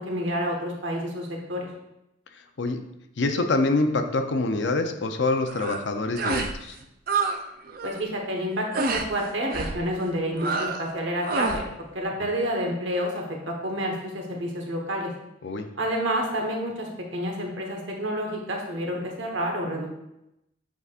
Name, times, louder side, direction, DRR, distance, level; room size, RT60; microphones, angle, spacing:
voice 1, 0.0-1.7 7.8-11.7 11.9-15.1 15.8-19.9, equal, 70° right, 1 dB, 1.3 m, -29 dB
voice 2, 3.2-6.8 12.2-12.3 15.4-15.7, left 2 dB, 60° left, 7 dB, 0.6 m, -25 dB
sound 1, 5.5-5.8 6.2-6.6 6.8-7.4 7.7-8.0 8.7-9.1 9.5-9.8 10.4-10.9 11.2-11.7, right 4 dB, 45° right, 0.5 m, -28 dB
8.0 x 4.8 x 2.5 m, 0.87 s
head